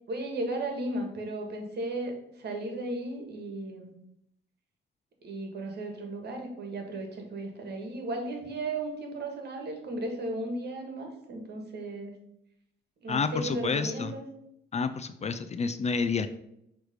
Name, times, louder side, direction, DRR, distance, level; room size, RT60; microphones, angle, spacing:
voice 1, 0.1-3.9 5.2-12.2 13.0-14.2, right 1 dB, 55° right, 3 dB, 1.6 m, -35 dB
voice 2, 13.1-14.1 14.7-16.3, left 5 dB, 35° left, 10 dB, 0.4 m, -29 dB
6.2 x 3.2 x 5.0 m, 0.78 s
cardioid pair, 90°, 20 cm